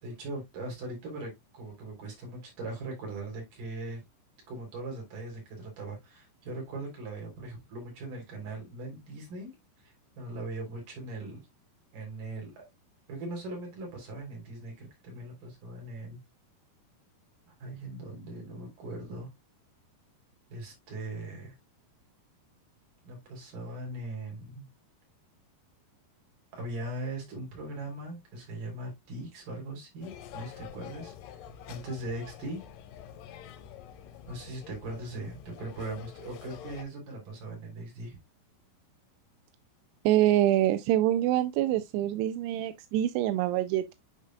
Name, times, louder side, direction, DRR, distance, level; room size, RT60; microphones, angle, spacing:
voice 1, 0.0-4.0 4.5-9.5 9.8-11.4 11.9-12.6 13.1-16.2 17.5-19.3 20.5-21.5 23.0-24.7 26.5-31.1 31.7-32.6 34.3-38.2, right 2 dB, 50° right, 4.8 m, -40 dB
sound 1, 30.0-36.8, left 9 dB, 85° left, 1.9 m, -47 dB
voice 2, 40.1-43.9, right 13 dB, 85° right, 2.5 m, -25 dB
9.8 x 5.2 x 2.3 m
omnidirectional pair, 5.0 m